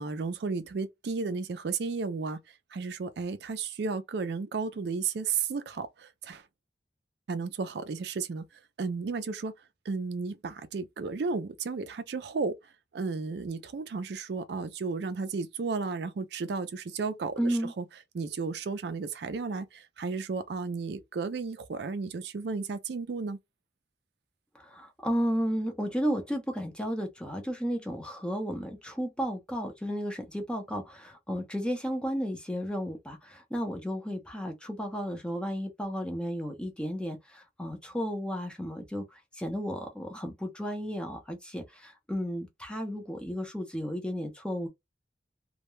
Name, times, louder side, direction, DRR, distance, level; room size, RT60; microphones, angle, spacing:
voice 1, 0.0-6.4 7.3-8.5 8.8-9.5 9.9-17.8 18.1-23.4, right 4 dB, 65° right, 0.4 m, -33 dB
voice 2, 17.4-17.7 24.5-44.7, equal, 5° left, 0.5 m, -33 dB
2.2 x 2.1 x 3.0 m
head